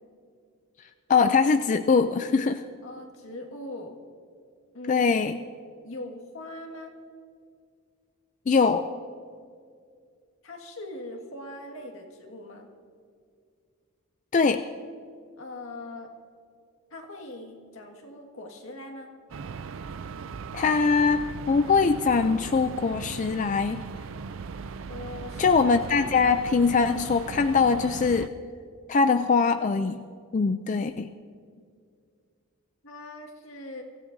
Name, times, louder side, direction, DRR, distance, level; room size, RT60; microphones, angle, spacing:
voice 1, 1.1-2.6 4.9-5.4 8.5-8.9 14.3-14.6 20.5-21.2 21.5-23.8 25.4-28.3 28.9-30.1 30.3-31.1, left 5 dB, 35° left, 8 dB, 0.3 m, -22 dB
voice 2, 2.8-4.0 4.7-5.1 5.8-6.9 10.4-12.7 15.4-16.1 16.9-19.1 24.9-25.6 30.7-30.9 31.4-31.6 32.8-33.8, left 1 dB, 80° left, 2 dB, 1.9 m, -41 dB
sound 1, 19.3-28.3, right 5 dB, 70° right, 0.4 m, -38 dB
23.5 x 15.0 x 2.7 m, 2.2 s
head